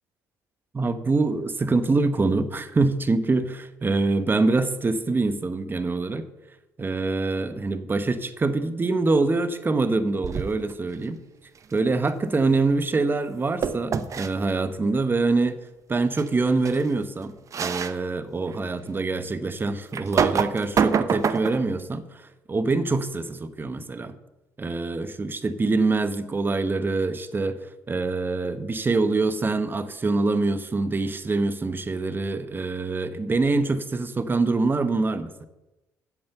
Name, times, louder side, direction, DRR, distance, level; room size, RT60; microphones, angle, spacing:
voice 1, 0.7-6.2 6.8-11.2 11.7-15.6 15.9-24.2 24.6-35.5, right 3 dB, 30° right, 12 dB, 1.0 m, -25 dB
sound 1, 10.2-10.7 13.6-14.3 16.2-16.3 16.6-16.8 17.5-17.9 18.5-18.6 19.9-21.7, right 6 dB, 45° right, 0.7 m, -25 dB
8.0 x 7.4 x 6.8 m, 1.0 s
supercardioid pair, 65°, 7 cm